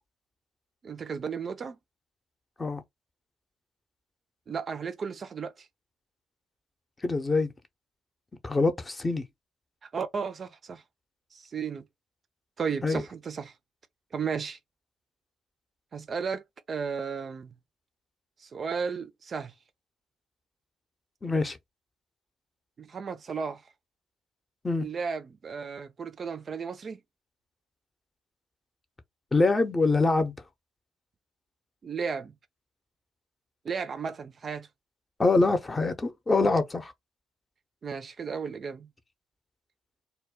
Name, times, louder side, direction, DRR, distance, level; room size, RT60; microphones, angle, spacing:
voice 1, 0.8-1.8 4.5-5.7 9.8-10.8 11.3-11.8 12.6-13.5 14.1-14.6 15.9-17.6 18.4-19.5 22.8-23.6 24.8-27.0 31.8-32.3 33.6-34.7 37.8-38.9, right 6 dB, 45° right, 0.4 m, -34 dB
voice 2, 7.0-7.5 8.4-9.2 12.8-13.0 21.2-21.6 24.6-24.9 29.3-30.3 35.2-36.9, left 3 dB, 25° left, 0.7 m, -24 dB
2.2 x 2.1 x 3.6 m
hypercardioid pair, 50°, 0 cm